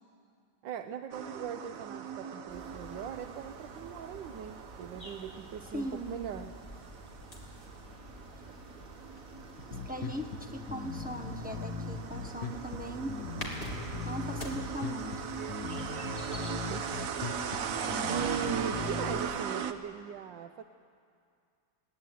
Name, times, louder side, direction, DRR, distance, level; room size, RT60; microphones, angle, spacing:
voice 1, 0.6-6.5 16.7-16.8 18.1-20.6, right 8 dB, 80° right, 8 dB, 1.4 m, -39 dB
sound 1, 1.1-19.7, right 7 dB, 55° right, 1.2 m, -39 dB
sound 2, 2.5-19.3, equal, 30° left, 3.3 m, -48 dB
voice 2, 5.7-6.2 9.7-13.2 14.0-15.2, right 1 dB, 5° right, 3 dB, 0.9 m, -39 dB
Bass guitar, 9.6-19.2, left 5 dB, 85° left, 1.9 m, -40 dB
21.5 x 17.0 x 9.2 m, 2.3 s
omnidirectional pair, 2.0 m